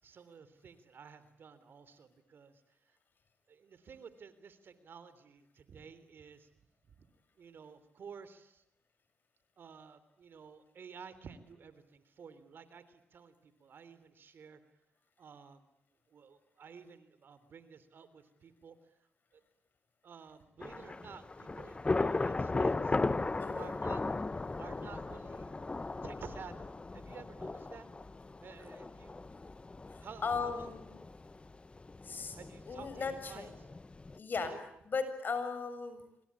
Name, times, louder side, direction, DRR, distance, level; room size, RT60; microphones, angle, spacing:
voice 1, 0.0-3.0 3.5-6.5 6.9-7.1 7.4-8.6 9.6-14.6 15.2-15.6 16.1-19.0 19.3-19.4 20.0-23.0 23.6-24.0 24.6-25.5 26.0-27.9 28.4-29.3 30.0-30.7 32.4-33.8 34.4-34.6, right 6 dB, 60° right, 14 dB, 3.5 m, -52 dB
Thunder / Rain, 20.6-34.2, left 3 dB, 25° left, 1.3 m, -37 dB
voice 2, 29.9-30.9 32.0-32.4 32.7-33.5 34.1-34.5 34.9-36.0, left 5 dB, 55° left, 10 dB, 7.1 m, -37 dB
26.5 x 24.5 x 8.6 m, 0.80 s
supercardioid pair, 55°, 4 cm